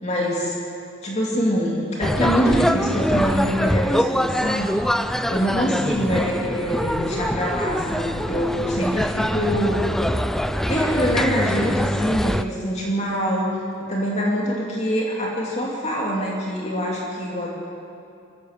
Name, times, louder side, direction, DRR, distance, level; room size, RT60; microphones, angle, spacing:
voice 1, 0.0-0.6 1.0-4.7 5.3-10.2 10.6-13.5 13.9-17.5, equal, 35° left, -3 dB, 2.7 m, -24 dB
sound 1, 2.0-12.4, equal, ahead, 0.5 m, -24 dB
24.5 x 14.0 x 7.5 m, 2.6 s
head